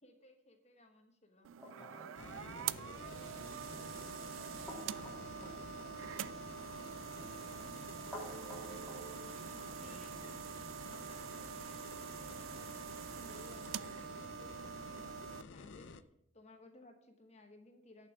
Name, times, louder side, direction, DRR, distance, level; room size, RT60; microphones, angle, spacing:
voice 1, 0.0-2.2 4.7-5.5 9.6-10.3 10.9-16.1 16.3-18.1, left 2 dB, 30° left, 5 dB, 1.2 m, -60 dB
sound 1, 1.4-15.4, right 9 dB, 75° right, 0.4 m, -45 dB
sound 2, 1.6-9.2, right 1 dB, ahead, 2.7 m, -53 dB
voice 2, 1.7-4.6 5.3-5.7 7.1-8.3 8.7-10.6, right 1 dB, 40° right, 1 dB, 2.4 m, -59 dB
sound 3, 2.1-16.0, left 4 dB, 60° left, 0.5 m, -51 dB
11.0 x 5.8 x 7.1 m, 0.77 s
head